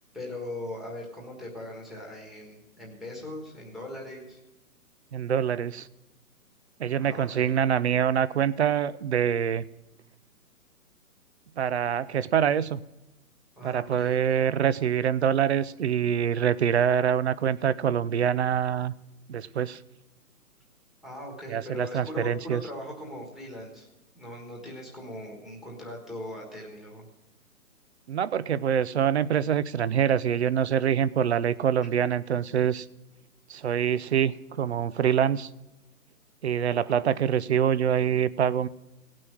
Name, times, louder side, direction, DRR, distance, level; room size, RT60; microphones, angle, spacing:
voice 1, 0.1-4.4 7.0-7.6 13.6-14.4 21.0-23.9 24.1-27.1 36.8-37.0 37.4-37.5, left 1 dB, ahead, -2 dB, 1.5 m, -40 dB
voice 2, 5.1-5.9 6.8-9.6 11.6-12.8 13.6-18.9 19.3-19.8 21.5-22.6 28.1-32.9 33.5-35.5 36.4-38.7, right 9 dB, 45° right, 18 dB, 0.4 m, -25 dB
17.5 x 6.1 x 6.2 m, 1.0 s
hypercardioid pair, 160°, 46 cm